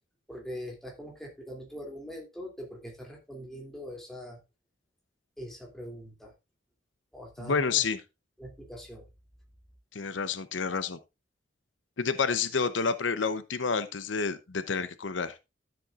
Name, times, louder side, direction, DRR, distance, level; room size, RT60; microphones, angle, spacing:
voice 1, 0.3-4.4 5.4-6.3 7.1-7.8 8.4-9.1, equal, ahead, 2.8 m, -42 dB
voice 2, 7.4-8.0 9.9-11.0 12.0-15.4, left 5 dB, 85° left, 0.8 m, -29 dB
13.0 x 7.6 x 2.5 m
head